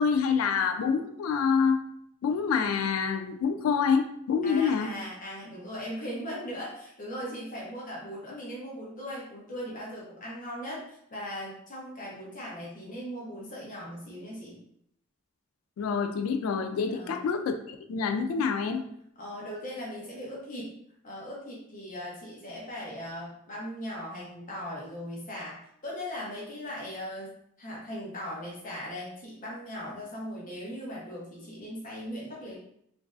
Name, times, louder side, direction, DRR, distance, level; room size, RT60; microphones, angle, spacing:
voice 1, 0.0-1.8 2.2-4.9 15.8-18.8, left 6 dB, 90° left, 8 dB, 0.3 m, -27 dB
voice 2, 4.4-14.6 16.9-17.2 19.2-20.8 21.0-32.6, equal, 40° left, -5 dB, 0.7 m, -39 dB
3.0 x 2.5 x 2.3 m, 0.71 s
head